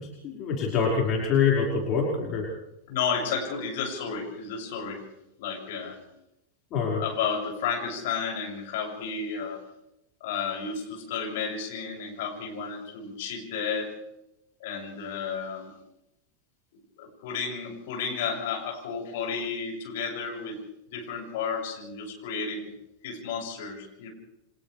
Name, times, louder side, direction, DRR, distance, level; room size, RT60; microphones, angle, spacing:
voice 1, 0.0-2.5 6.7-7.0, left 5 dB, 35° left, -3 dB, 5.3 m, -25 dB
voice 2, 2.9-5.0 5.4-6.0 7.0-9.6 10.2-13.9 14.6-15.7 17.0-20.6 20.9-22.7 23.0-24.1, left 6 dB, 55° left, -1 dB, 7.3 m, -32 dB
30.0 x 25.5 x 3.5 m, 0.87 s
figure-of-eight pair, 90°, 0 cm